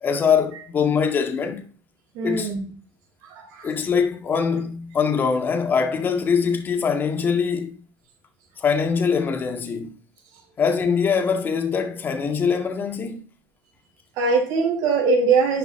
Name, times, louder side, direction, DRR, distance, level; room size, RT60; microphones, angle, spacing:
voice 1, 0.0-1.6 2.2-2.5 3.6-7.7 8.6-10.0 10.6-13.2, left 6 dB, 30° left, 2.0 m, -23 dB
voice 2, 2.1-2.6 3.3-3.7 14.2-15.6, right 4 dB, 75° right, 4.3 m, -21 dB
11.0 x 6.8 x 3.9 m
cardioid pair, 135°, 7 cm